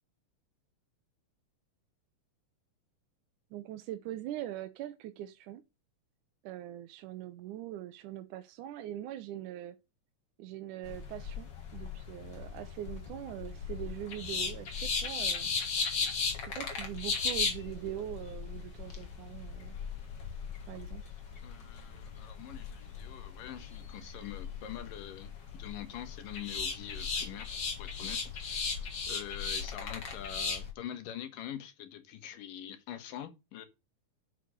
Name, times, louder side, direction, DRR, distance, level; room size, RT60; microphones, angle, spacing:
voice 1, 3.5-5.6 6.4-9.8 10.4-15.5 16.4-19.8 20.7-21.0, right 13 dB, 75° right, 2.1 m, -42 dB
sound 1, 10.8-30.7, left 5 dB, 40° left, 2.0 m, -37 dB
voice 2, 21.4-33.7, left 11 dB, 80° left, 2.9 m, -45 dB
6.8 x 6.4 x 6.3 m
omnidirectional pair, 3.9 m